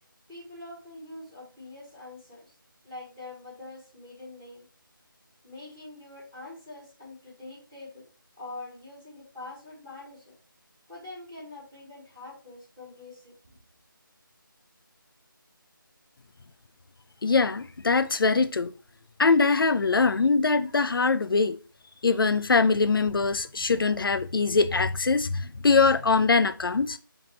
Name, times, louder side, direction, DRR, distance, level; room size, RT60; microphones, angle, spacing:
voice 1, 0.3-2.5 2.8-4.6 5.4-8.1 8.4-10.3 10.9-13.3, left 2 dB, ahead, 0.5 m, -44 dB
voice 2, 17.2-18.7 19.2-21.6 22.0-27.0, left 4 dB, 75° left, 0.4 m, -22 dB
3.5 x 2.9 x 4.6 m
figure-of-eight pair, 175°, 12 cm